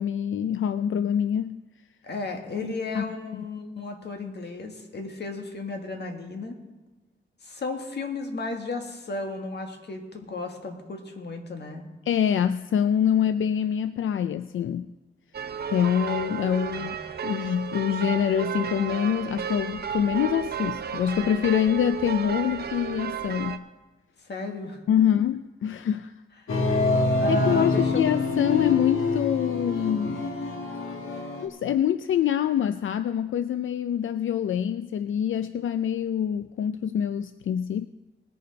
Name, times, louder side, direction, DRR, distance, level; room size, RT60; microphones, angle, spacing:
voice 1, 0.0-1.6 2.6-3.4 12.1-14.9 15.7-17.0 17.2-23.6 24.9-26.1 27.3-30.3 31.4-37.9, left 9 dB, 75° left, 12 dB, 0.4 m, -25 dB
voice 2, 2.0-6.6 7.4-11.9 16.7-16.9 24.3-24.8 27.2-28.0, left 3 dB, 55° left, 4 dB, 1.7 m, -34 dB
sound 1, 15.3-23.6, right 8 dB, 50° right, 0.6 m, -33 dB
sound 2, 26.5-31.5, left 2 dB, 90° left, 1.5 m, -26 dB
19.5 x 6.9 x 5.2 m, 1.1 s
wide cardioid pair, 140°, 21 cm